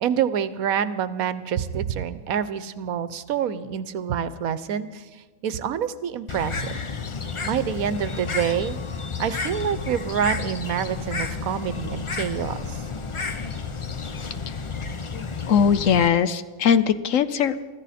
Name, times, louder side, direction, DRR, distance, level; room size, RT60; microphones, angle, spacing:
voice 1, 0.0-5.0 5.4-6.7 7.4-8.8 9.2-12.8, right 8 dB, 75° right, 14 dB, 1.2 m, -27 dB
Bird, 6.3-16.1, left 4 dB, 35° left, 0.5 m, -31 dB
voice 2, 15.1-17.6, left 7 dB, 65° left, 13 dB, 1.0 m, -21 dB
24.5 x 14.0 x 4.2 m, 1.3 s
omnidirectional pair, 1.5 m